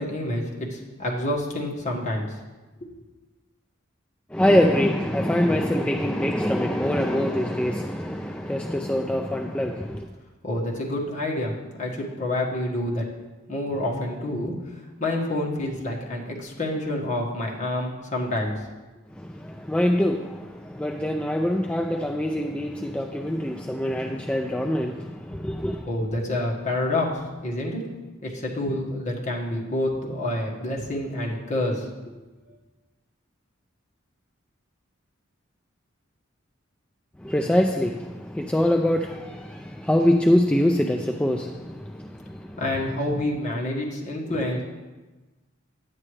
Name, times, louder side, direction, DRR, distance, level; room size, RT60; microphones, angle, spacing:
voice 1, 0.0-2.3 10.4-13.1 13.5-14.5 15.0-18.7 25.9-27.8 28.2-31.9 42.6-44.6, left 1 dB, 40° left, -3 dB, 1.5 m, -28 dB
voice 2, 4.3-10.1 19.1-25.9 37.2-42.7, left 1 dB, 5° left, 2 dB, 0.4 m, -24 dB
9.8 x 8.6 x 3.2 m, 1.2 s
head